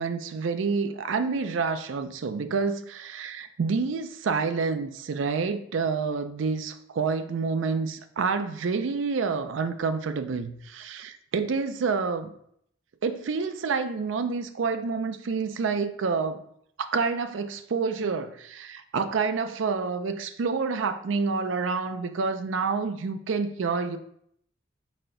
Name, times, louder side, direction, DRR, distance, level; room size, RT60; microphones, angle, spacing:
voice 1, 0.0-12.3 13.0-16.4 16.9-24.0, right 4 dB, 80° right, 9 dB, 0.4 m, -28 dB
4.3 x 3.3 x 3.7 m, 0.69 s
head